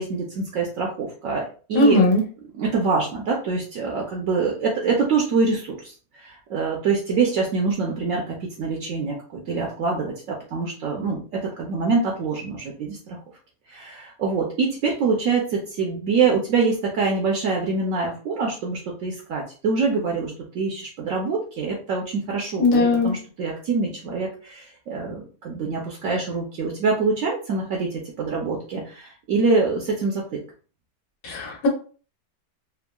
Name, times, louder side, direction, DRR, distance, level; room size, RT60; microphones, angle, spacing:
voice 1, 0.0-2.1 2.5-13.2 13.7-27.9 28.2-30.4, right 4 dB, 65° right, -1 dB, 0.9 m, -25 dB
voice 2, 1.7-2.2 22.6-23.1 31.2-31.7, left 2 dB, 85° left, 0 dB, 1.4 m, -18 dB
3.5 x 2.1 x 2.2 m, 0.39 s
omnidirectional pair, 1.6 m